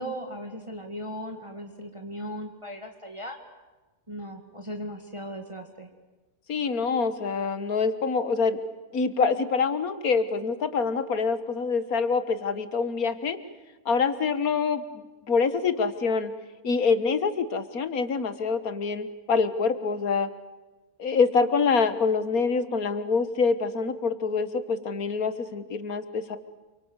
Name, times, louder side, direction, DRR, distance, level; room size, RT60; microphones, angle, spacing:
voice 1, 0.0-3.4 4.1-5.9, equal, 20° right, 4 dB, 2.2 m, -37 dB
voice 2, 6.5-8.6 8.9-13.4 13.9-16.3 16.6-20.3 21.0-26.4, left 5 dB, 65° left, 12 dB, 2.0 m, -25 dB
28.0 x 24.0 x 8.2 m, 1.2 s
omnidirectional pair, 1.6 m